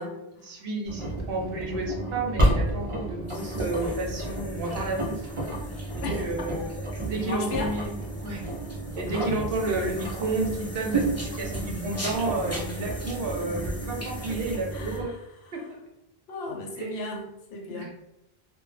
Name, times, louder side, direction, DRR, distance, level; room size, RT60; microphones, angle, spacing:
voice 1, 0.0-5.2 5.9-6.6 7.1-8.4 9.0-15.1 15.5-15.6 16.8-17.0 17.7-17.9, right 2 dB, 70° right, 0 dB, 0.8 m, -31 dB
Engine, 0.9-15.0, right 1 dB, 45° right, 0.4 m, -31 dB
sound 1, 3.3-15.0, equal, 20° left, 0.5 m, -43 dB
voice 2, 6.0-6.5 7.0-7.8 9.1-9.4 10.9-11.0 14.7-15.6 16.3-17.9, left 3 dB, 85° left, 1 dB, 0.8 m, -36 dB
2.1 x 2.1 x 3.1 m, 0.90 s
omnidirectional pair, 1.0 m